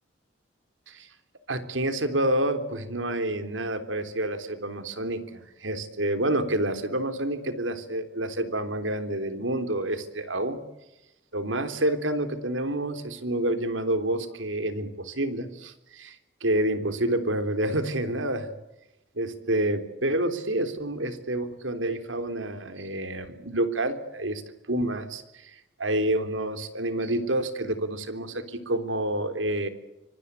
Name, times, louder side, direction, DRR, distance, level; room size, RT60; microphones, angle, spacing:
voice 1, 1.5-10.6 11.3-16.2 16.4-18.5 19.2-24.4 24.7-25.5 25.8-29.7, right 1 dB, 90° right, 9 dB, 3.5 m, -28 dB
25.5 x 24.0 x 8.3 m, 0.95 s
head